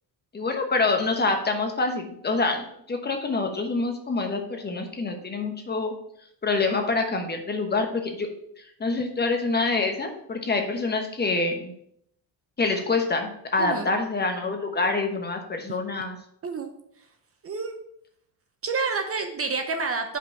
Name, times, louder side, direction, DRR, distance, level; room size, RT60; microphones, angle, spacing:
voice 1, 0.3-5.9 6.4-8.3 8.6-11.7 12.6-16.2, left 3 dB, 25° left, 4 dB, 1.0 m, -26 dB
voice 2, 13.6-13.9 15.7-15.8 16.4-16.7 17.4-17.8 18.6-20.2, right 4 dB, 30° right, 6 dB, 0.7 m, -29 dB
5.5 x 5.0 x 5.7 m, 0.72 s
cardioid pair, 140°, 43 cm